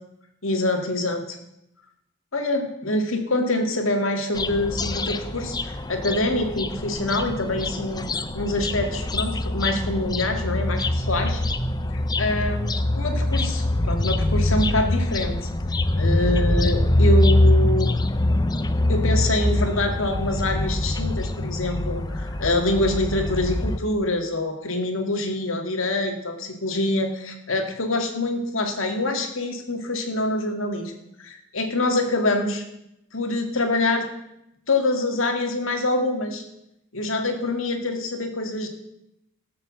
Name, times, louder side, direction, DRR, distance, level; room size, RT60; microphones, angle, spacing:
voice 1, 0.4-1.3 2.3-11.4 11.9-12.7 13.0-15.4 16.0-17.9 18.9-30.9 31.2-32.6 33.1-34.1 34.7-36.4 36.9-38.7, left 2 dB, 65° left, 4 dB, 2.0 m, -25 dB
sound 1, 4.4-23.8, left 1 dB, 20° left, 0.6 m, -24 dB
15.5 x 6.9 x 7.4 m, 0.84 s
head